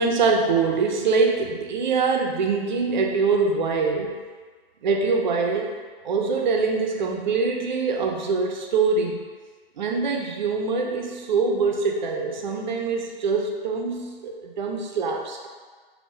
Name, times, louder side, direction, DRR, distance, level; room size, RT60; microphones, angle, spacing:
voice 1, 0.0-4.1 4.8-5.7 6.0-9.3 9.8-15.5, right 4 dB, 50° right, 1 dB, 0.5 m, -24 dB
3.4 x 2.6 x 2.7 m, 1.5 s
figure-of-eight pair, 120°, 30 cm